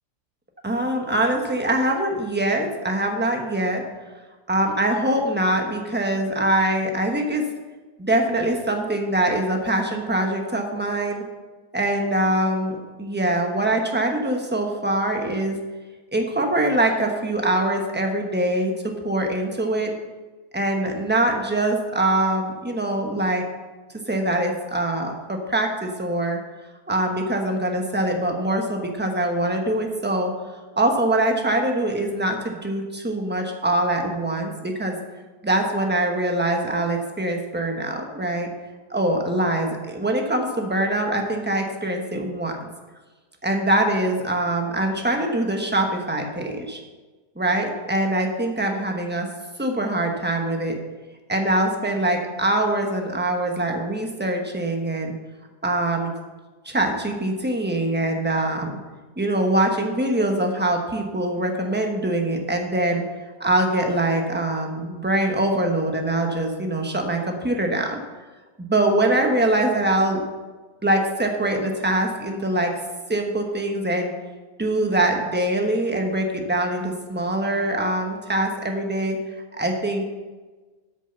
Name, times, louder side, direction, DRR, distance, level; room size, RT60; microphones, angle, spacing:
voice 1, 0.6-3.8 4.5-7.4 8.0-11.2 11.7-15.5 16.1-18.7 19.0-19.9 20.5-23.4 24.1-26.4 26.9-30.3 30.8-35.0 35.4-38.5 38.9-42.5 43.4-46.8 47.4-49.3 49.6-50.8 51.3-55.2 55.6-56.1 56.6-58.8 59.2-63.0 63.4-68.0 68.6-70.2 70.8-72.7 73.1-74.1 74.6-79.2 79.6-80.0, right 1 dB, 10° right, 2 dB, 0.9 m, -23 dB
8.5 x 6.6 x 6.8 m, 1.3 s
omnidirectional pair, 1.8 m